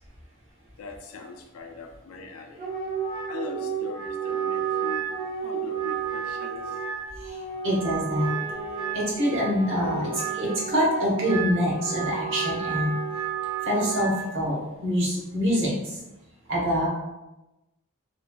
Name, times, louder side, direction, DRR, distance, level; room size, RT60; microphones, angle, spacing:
voice 1, 0.8-2.7 3.3-5.0 5.4-6.8, left 4 dB, 75° left, 2 dB, 0.4 m, -40 dB
Wind instrument woodwind instrument, 2.6-14.2, right 7 dB, 30° right, 0.7 m, -31 dB
voice 2, 7.2-8.3 8.9-12.9 13.6-16.0 16.5-16.9, equal, 60° right, -5 dB, 1.0 m, -25 dB
Wind instrument woodwind instrument 2, 8.1-11.1, left 2 dB, 15° left, 0.5 m, -44 dB
3.1 x 2.4 x 2.2 m, 0.98 s
head